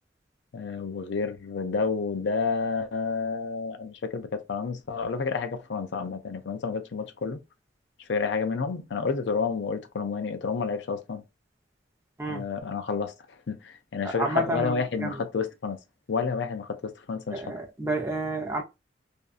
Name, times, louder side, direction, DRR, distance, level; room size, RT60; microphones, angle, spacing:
voice 1, 0.5-7.4 8.1-11.2 12.3-13.1 13.5-15.8 16.1-17.4, left 5 dB, 70° left, 0.5 m, -30 dB
voice 2, 14.0-15.2 17.3-18.6, right 2 dB, 15° right, 0.6 m, -30 dB
2.6 x 2.3 x 2.4 m
head